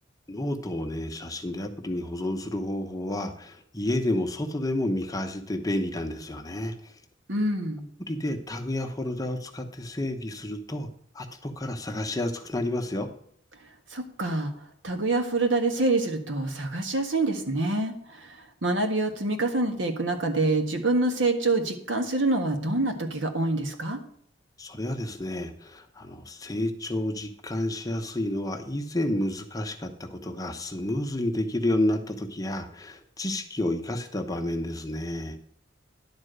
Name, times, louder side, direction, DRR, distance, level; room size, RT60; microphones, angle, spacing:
voice 1, 0.3-6.9 8.1-10.9 11.1-13.1 24.6-35.4, left 1 dB, 20° left, 5 dB, 1.0 m, -30 dB
voice 2, 7.3-7.9 13.9-14.5 14.8-24.0, right 2 dB, 85° right, 5 dB, 1.6 m, -26 dB
11.0 x 4.4 x 7.9 m, 0.64 s
head